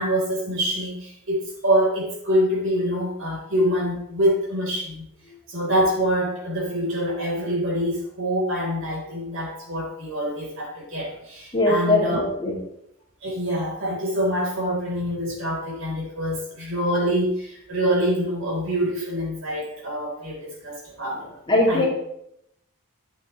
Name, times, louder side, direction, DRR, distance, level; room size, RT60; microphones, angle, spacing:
voice 1, 0.0-5.0 5.5-12.2 13.2-21.2 21.7-21.9, equal, 65° right, -3 dB, 3.8 m, -25 dB
voice 2, 11.5-12.6 21.5-21.9, left 1 dB, 20° left, -4 dB, 2.4 m, -20 dB
11.0 x 8.5 x 3.1 m, 0.78 s
head